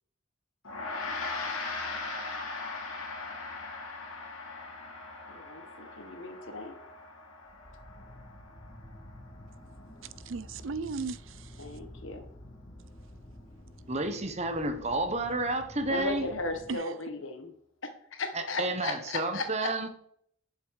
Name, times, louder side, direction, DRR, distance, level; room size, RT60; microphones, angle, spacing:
Gong, 0.6-10.2, left 3 dB, 90° left, 2.3 m, -40 dB
voice 1, 5.3-6.8 11.6-12.2 15.9-17.5 17.8-19.7, left 3 dB, 70° left, 6 dB, 1.6 m, -36 dB
sound 1, 7.4-16.7, left 1 dB, 45° left, 3.4 m, -50 dB
voice 2, 10.2-11.6 16.7-16.8, right 4 dB, 75° right, 16 dB, 0.6 m, -36 dB
voice 3, 13.9-16.3 18.3-19.9, right 2 dB, 30° right, 7 dB, 1.1 m, -31 dB
10.5 x 7.5 x 4.8 m, 0.68 s
head